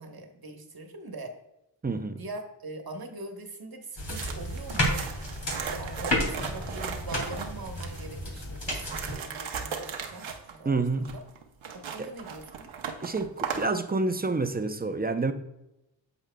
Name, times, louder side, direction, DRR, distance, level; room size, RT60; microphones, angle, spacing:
voice 1, 0.0-1.3 1.8-5.0 5.7-10.8 11.1-11.2 11.7-12.7, right 2 dB, 50° right, 1.3 m, -42 dB
voice 2, 1.8-2.2 10.6-11.1 12.0-12.1 13.0-15.3, right 3 dB, 20° right, 0.7 m, -28 dB
sound 1, 4.0-9.1, left 1 dB, 65° left, 2.5 m, -32 dB
sound 2, 4.1-8.1 8.6-13.7, right 6 dB, 85° right, 0.9 m, -37 dB
9.0 x 7.1 x 2.3 m
cardioid pair, 55°, 46 cm